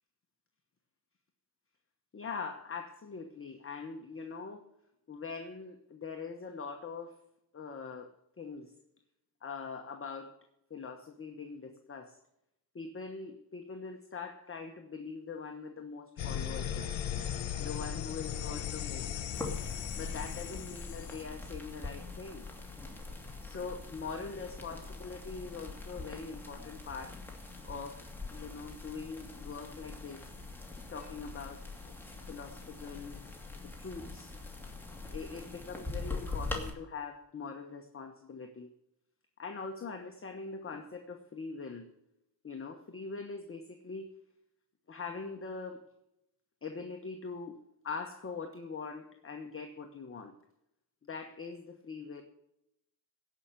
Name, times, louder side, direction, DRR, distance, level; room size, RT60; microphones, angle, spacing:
voice 1, 2.1-4.6 5.1-7.2 7.5-8.1 8.4-8.7 9.4-10.4 10.7-12.2 12.7-16.9 17.6-19.2 20.0-22.5 23.4-27.2 27.6-28.0 28.3-30.2 30.9-31.9 32.3-33.2 33.6-34.3 35.1-38.7 39.4-41.9 42.4-44.1 44.9-45.8 46.6-50.3 51.0-52.2, left 4 dB, 30° left, 4 dB, 1.1 m, -42 dB
sound 1, 16.2-21.2, left 9 dB, 75° left, 1.4 m, -37 dB
sound 2, 19.3-36.7, left 3 dB, 5° left, 2.6 m, -43 dB
17.0 x 5.8 x 7.5 m, 0.84 s
cardioid pair, 105°, 46 cm